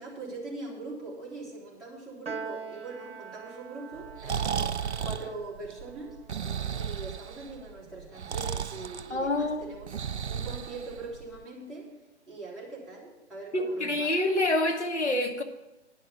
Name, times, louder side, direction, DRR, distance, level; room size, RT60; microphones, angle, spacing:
voice 1, 0.0-6.2 6.7-9.9 10.3-11.9 12.3-14.1, right 3 dB, ahead, -8 dB, 2.8 m, -42 dB
Piano, 2.3-8.8, right 5 dB, 55° right, 1.0 m, -45 dB
Breathing, 4.0-11.4, right 7 dB, 70° right, 0.6 m, -34 dB
voice 2, 9.1-9.6 13.5-15.4, left 1 dB, 75° left, 4 dB, 1.5 m, -27 dB
10.5 x 5.7 x 8.1 m, 1.0 s
figure-of-eight pair, 130°, 35 cm